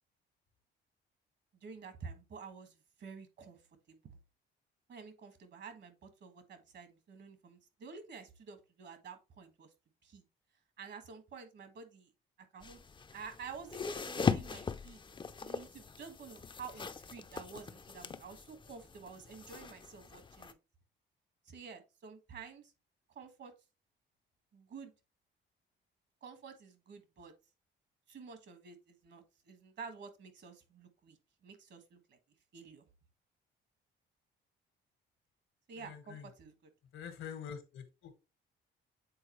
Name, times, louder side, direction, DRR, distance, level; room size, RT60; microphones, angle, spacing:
voice 1, 1.6-3.6 3.9-4.2 4.9-9.7 10.0-10.2 10.8-12.1 12.5-12.8 13.1-20.6 21.5-22.7 23.1-23.5 24.5-24.9 26.2-27.3 28.1-31.2 31.4-32.2 32.5-32.8 35.7-36.5, right 5 dB, 60° right, 8 dB, 1.6 m, -50 dB
sound 1, 12.6-20.5, left 5 dB, 25° left, 0.5 m, -40 dB
voice 2, 35.8-36.3 36.9-38.1, left 7 dB, 80° left, 9 dB, 1.4 m, -46 dB
7.9 x 4.0 x 3.0 m, 0.28 s
cardioid pair, 90°, 20 cm